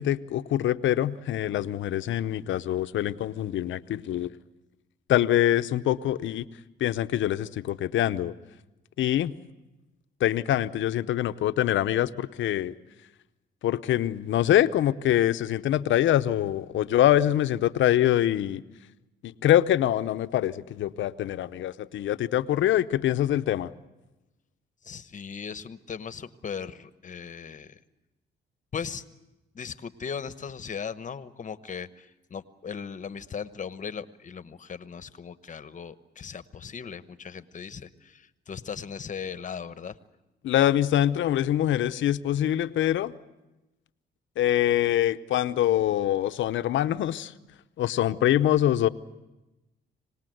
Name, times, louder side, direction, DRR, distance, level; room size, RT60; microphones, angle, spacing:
voice 1, 0.0-4.3 5.1-6.5 6.8-8.3 9.0-9.3 10.2-12.7 13.6-18.6 19.2-23.7 40.4-43.1 44.4-47.3 47.8-48.9, left 12 dB, 70° left, 12 dB, 0.8 m, -24 dB
voice 2, 24.8-27.8 28.7-29.0 29.5-39.9, left 6 dB, 40° left, 13 dB, 1.0 m, -38 dB
26.0 x 19.0 x 7.8 m, 1.0 s
cardioid pair, 90°, 20 cm